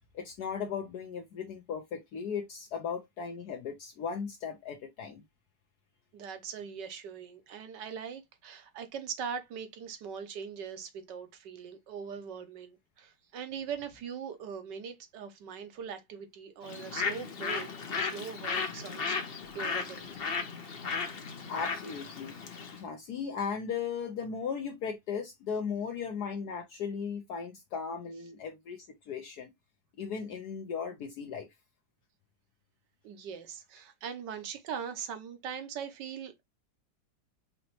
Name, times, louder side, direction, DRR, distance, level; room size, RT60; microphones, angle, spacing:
voice 1, 0.1-5.2 21.5-22.3 22.7-29.5 30.0-31.5, left 6 dB, 65° left, 1.2 m, -37 dB
voice 2, 6.1-19.2 19.5-20.1 33.0-36.4, right 7 dB, 75° right, 1.4 m, -41 dB
Bird, 16.6-22.8, left 5 dB, 45° left, 0.8 m, -35 dB
5.2 x 2.8 x 2.9 m
omnidirectional pair, 2.0 m